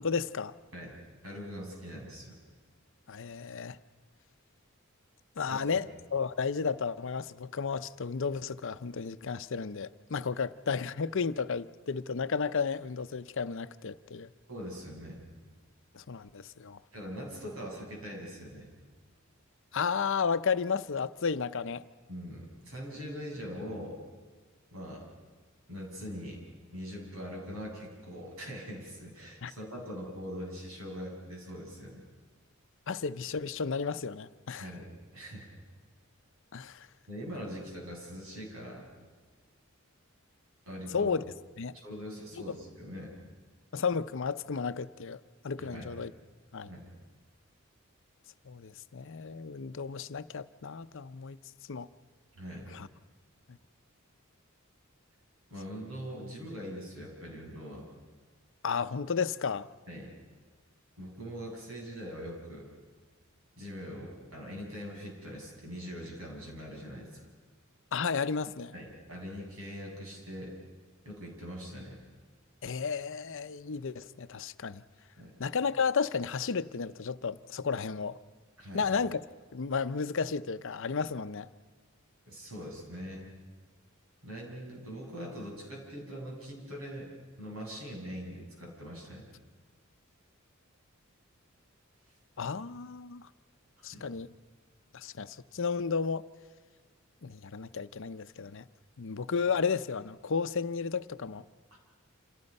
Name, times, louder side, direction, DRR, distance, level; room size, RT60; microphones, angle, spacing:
voice 1, 0.0-0.5 3.1-3.8 5.4-14.3 15.9-16.8 19.7-21.8 29.4-29.5 32.9-34.7 36.5-36.9 40.9-41.2 41.6-41.7 43.7-45.2 45.4-46.1 46.5-46.7 48.5-51.4 51.7-51.9 52.7-52.9 58.6-59.7 67.9-68.7 72.6-74.8 75.4-78.2 78.7-79.2 79.5-81.5 92.4-93.3 93.8-94.3 94.9-96.2 97.2-98.6 99.0-101.4, left 5 dB, 65° left, 12 dB, 0.7 m, -33 dB
voice 2, 0.7-2.4 5.5-5.9 14.5-15.2 16.9-18.7 22.1-24.0 24.7-25.1 25.7-26.4 26.7-32.0 34.5-35.5 37.1-38.9 40.7-41.1 41.7-43.1 45.6-45.9 46.6-46.9 52.3-52.7 55.5-57.9 59.9-60.1 61.0-62.7 63.6-67.3 68.7-70.6 71.1-72.0 75.2-75.4 78.6-78.9 82.3-83.3 84.2-87.1 87.4-89.3 93.8-94.1 101.7-101.8, equal, 80° right, 0 dB, 7.3 m, -42 dB
29.0 x 27.5 x 5.5 m, 1.4 s
head